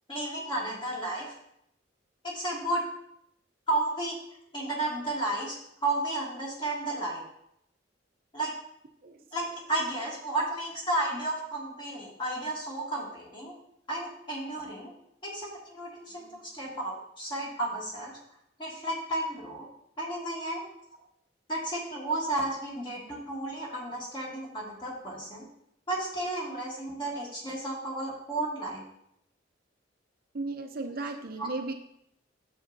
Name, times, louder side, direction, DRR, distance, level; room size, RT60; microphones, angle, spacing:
voice 1, 0.1-1.3 2.2-2.8 3.7-4.2 4.5-7.2 8.3-8.5 9.3-13.6 13.9-14.9 15.2-18.2 18.6-19.7 20.0-20.7 21.5-25.5 25.9-28.8 31.4-31.5, right 2 dB, 25° left, -4 dB, 2.1 m, -33 dB
voice 2, 30.3-31.7, right 3 dB, 50° right, 4 dB, 0.6 m, -35 dB
9.5 x 7.3 x 2.7 m, 0.75 s
head